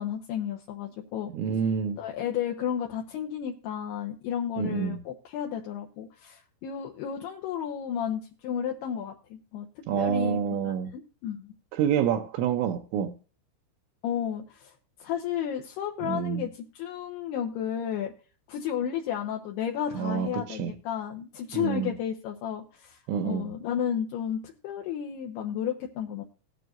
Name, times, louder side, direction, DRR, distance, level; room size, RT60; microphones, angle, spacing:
voice 1, 0.0-1.3 2.0-11.5 14.0-14.7 15.0-18.1 18.5-26.2, left 9 dB, 75° left, 2.4 m, -33 dB
voice 2, 1.3-2.0 4.6-5.0 9.9-10.9 11.7-13.2 16.0-16.5 20.0-20.8 21.5-21.9 23.1-23.5, right 8 dB, 80° right, 3.0 m, -28 dB
18.5 x 9.3 x 2.5 m
omnidirectional pair, 5.8 m